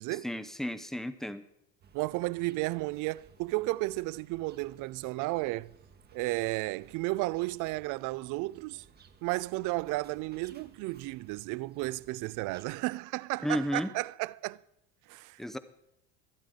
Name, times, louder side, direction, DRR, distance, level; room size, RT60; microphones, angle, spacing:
voice 1, 0.1-1.4 13.4-13.9 15.4-15.6, equal, ahead, 0.6 m, -33 dB
sound 1, 1.8-12.7, right 6 dB, 25° right, 1.0 m, -59 dB
voice 2, 1.9-5.7 6.1-8.8 9.2-14.6 15.1-15.6, right 21 dB, 60° right, 0.5 m, -33 dB
25.0 x 9.0 x 3.8 m
cardioid pair, 130°, 35 cm